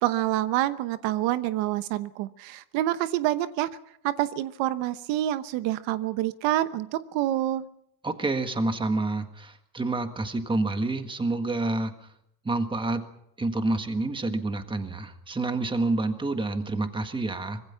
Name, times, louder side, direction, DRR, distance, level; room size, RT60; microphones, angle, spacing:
voice 1, 0.0-3.7 4.0-7.7, right 14 dB, 65° right, 12 dB, 1.0 m, -27 dB
voice 2, 8.0-12.1 12.5-13.1 13.4-17.6, right 2 dB, 10° right, 7 dB, 1.6 m, -28 dB
25.0 x 21.0 x 5.8 m, 0.77 s
cardioid pair, 150°, 48 cm